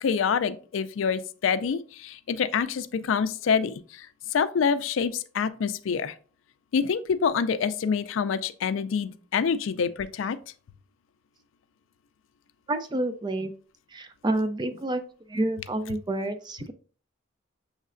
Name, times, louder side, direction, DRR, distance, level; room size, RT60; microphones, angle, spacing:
voice 1, 0.0-4.1 4.3-6.1 6.7-10.4, left 6 dB, 85° left, 13 dB, 0.4 m, -26 dB
voice 2, 12.7-13.5 13.9-15.0 15.3-16.7, right 1 dB, 25° right, 10 dB, 0.4 m, -29 dB
6.4 x 3.2 x 2.5 m, 0.40 s
head